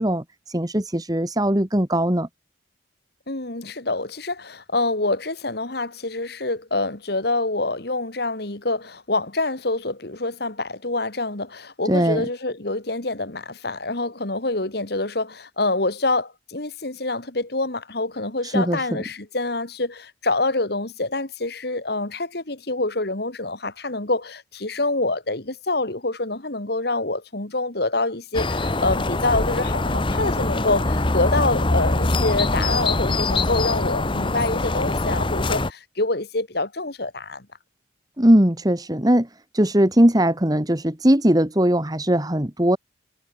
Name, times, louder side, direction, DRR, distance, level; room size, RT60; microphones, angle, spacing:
voice 1, 0.0-2.3 11.9-12.3 18.4-19.0 38.2-39.3 39.5-42.8, right 1 dB, 20° right, 1.8 m, -20 dB
voice 2, 3.3-37.5, left 2 dB, 55° left, 2.2 m, -26 dB
sound 1, 28.3-35.7, left 2 dB, 25° left, 1.1 m, -23 dB
head